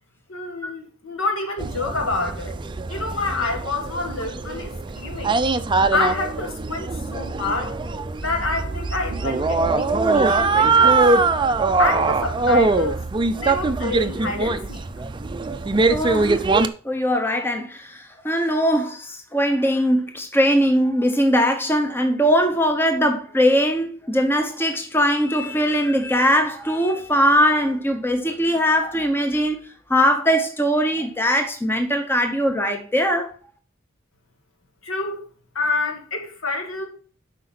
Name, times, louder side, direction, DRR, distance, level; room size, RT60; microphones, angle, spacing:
voice 1, 0.3-2.6 2.9-5.4 5.9-7.8 8.2-11.0 11.8-13.0 13.3-14.8 34.8-35.2 35.6-36.9, left 3 dB, 70° left, 1.7 m, -27 dB
sound 1, 1.6-16.7, right 3 dB, 25° right, 0.4 m, -22 dB
voice 2, 15.9-16.4 16.8-29.6 29.9-33.3, equal, 10° left, 0.7 m, -20 dB
7.8 x 5.1 x 4.2 m
head